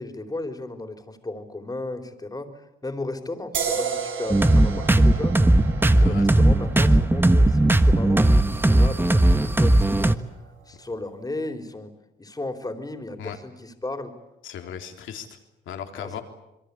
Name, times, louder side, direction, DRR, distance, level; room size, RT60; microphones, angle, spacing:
voice 1, 0.0-5.7 6.0-8.2 8.5-10.2 10.7-11.9 12.2-14.1 16.0-16.2, left 2 dB, 20° left, 7 dB, 4.0 m, -35 dB
sound 1, 3.5-10.8, right 6 dB, 75° right, 5.1 m, -35 dB
sound 2, 4.3-10.2, right 1 dB, 10° right, 1.4 m, -18 dB
voice 2, 5.9-6.3 13.2-13.4 14.4-15.4 15.7-16.2, left 8 dB, 80° left, 5 dB, 3.6 m, -36 dB
27.0 x 22.5 x 8.5 m, 0.89 s
cardioid pair, 90°, 20 cm